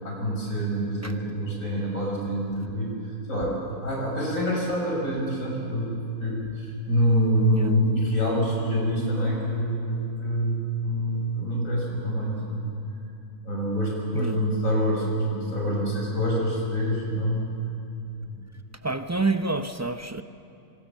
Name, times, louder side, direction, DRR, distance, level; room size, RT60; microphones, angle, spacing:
voice 1, 0.0-12.6 13.4-17.5 18.2-18.3, equal, 60° left, -2 dB, 6.6 m, -26 dB
voice 2, 18.8-20.2, right 3 dB, 20° right, 8 dB, 0.4 m, -28 dB
25.0 x 25.0 x 7.3 m, 2.7 s
omnidirectional pair, 1.5 m